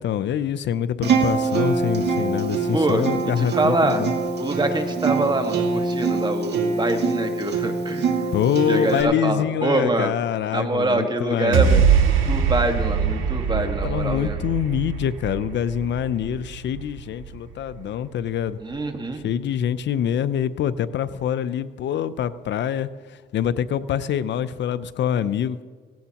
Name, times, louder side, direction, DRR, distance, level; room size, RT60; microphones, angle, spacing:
voice 1, 0.0-4.1 8.3-11.9 13.5-18.6 19.1-25.6, left 9 dB, 65° left, 14 dB, 0.6 m, -25 dB
Mallet percussion, 1.0-7.4, right 3 dB, 20° left, 2.6 m, -44 dB
Acoustic guitar, 1.0-9.0, right 4 dB, 60° right, 2.3 m, -24 dB
voice 2, 2.7-3.0 3.4-4.0 4.4-8.3 8.7-10.2 10.5-11.8 12.3-14.4 18.6-19.2, right 2 dB, 20° right, 5 dB, 1.7 m, -24 dB
sound 1, 11.5-18.0, right 7 dB, 80° right, 2.4 m, -23 dB
17.5 x 16.5 x 3.0 m, 1.5 s
cardioid pair, 90°, 20 cm